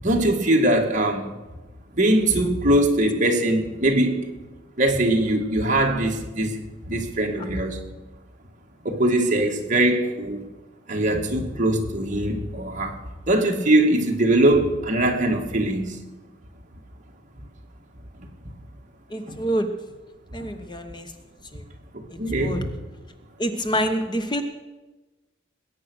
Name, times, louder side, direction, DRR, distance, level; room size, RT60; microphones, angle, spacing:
voice 1, 0.0-1.4 1.9-4.3 4.8-7.8 8.8-10.5 10.9-13.0 13.3-16.0 19.3-19.4 20.4-20.5 21.9-22.7, right 1 dB, 40° right, 2.2 m, -21 dB
voice 2, 19.1-19.7 20.3-21.1 21.5-21.6 22.1-22.6 23.4-24.4, equal, 25° left, 1.0 m, -27 dB
20.5 x 9.5 x 6.4 m
head